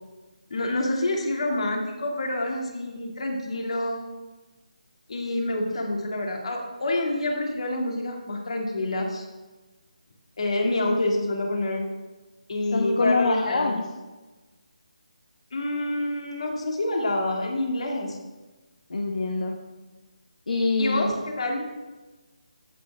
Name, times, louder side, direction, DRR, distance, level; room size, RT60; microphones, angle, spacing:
voice 1, 0.5-4.0 5.1-9.2 10.4-11.8 12.5-13.7 15.5-18.2 20.8-21.7, left 1 dB, 50° left, 1 dB, 2.4 m, -27 dB
voice 2, 12.7-13.8 18.9-19.6 20.5-21.1, left 3 dB, 70° left, 1 dB, 1.3 m, -25 dB
15.0 x 8.4 x 3.6 m, 1.2 s
hypercardioid pair, 175°, 4 cm